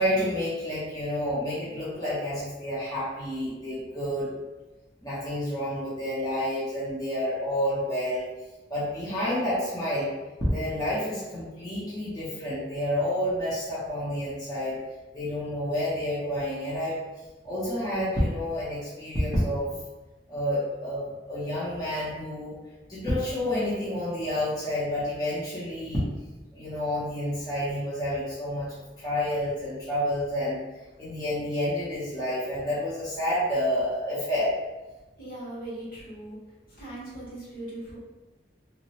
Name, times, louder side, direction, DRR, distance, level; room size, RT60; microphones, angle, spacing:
voice 1, 0.0-4.4 5.0-8.2 8.7-10.1 10.4-14.7 15.1-17.0 17.4-19.7 20.3-22.6 22.9-26.0 26.5-28.7 29.0-30.6 31.0-34.5, left 1 dB, 20° left, -10 dB, 0.7 m, -29 dB
voice 2, 35.2-36.4 36.7-38.0, right 1 dB, 55° left, -7 dB, 1.1 m, -39 dB
3.0 x 2.1 x 2.7 m, 1.1 s
head